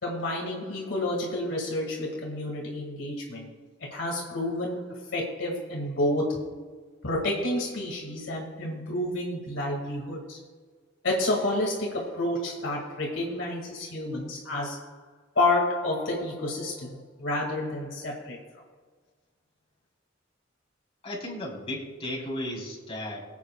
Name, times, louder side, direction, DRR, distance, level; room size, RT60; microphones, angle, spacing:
voice 1, 0.0-3.6 3.9-6.6 7.0-10.4 11.0-14.9 15.4-18.4, left 1 dB, 70° left, -1 dB, 2.0 m, -29 dB
voice 2, 21.0-23.3, left 1 dB, 30° left, -3 dB, 3.4 m, -35 dB
23.5 x 8.3 x 2.2 m, 1.4 s
head